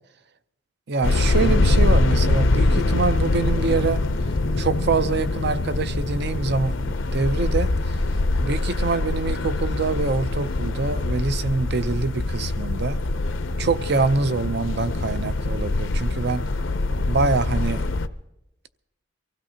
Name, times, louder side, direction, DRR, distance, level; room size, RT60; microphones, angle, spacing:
voice 1, 0.9-4.0 4.6-8.0 8.4-13.0 13.6-16.5 17.1-17.8, right 4 dB, 50° right, 13 dB, 0.5 m, -25 dB
sound 1, 1.0-18.1, left 2 dB, 60° left, 0.6 m, -23 dB
24.0 x 16.0 x 2.8 m, 0.87 s
head